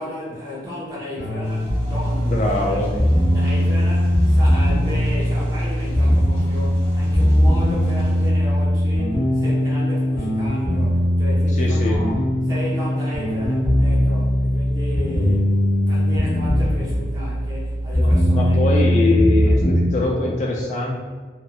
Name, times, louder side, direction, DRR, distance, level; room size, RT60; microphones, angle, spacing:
voice 1, 0.0-3.0 3.3-18.7, left 1 dB, 20° right, -8 dB, 0.8 m, -33 dB
sound 1, 1.2-19.8, equal, 90° left, 0.7 m, -19 dB
sound 2, 1.4-8.3, equal, 15° left, 0.7 m, -37 dB
voice 2, 2.3-2.9 11.5-12.0 18.0-21.0, left 2 dB, 40° left, -1 dB, 0.3 m, -22 dB
2.8 x 2.4 x 2.3 m, 1.5 s
head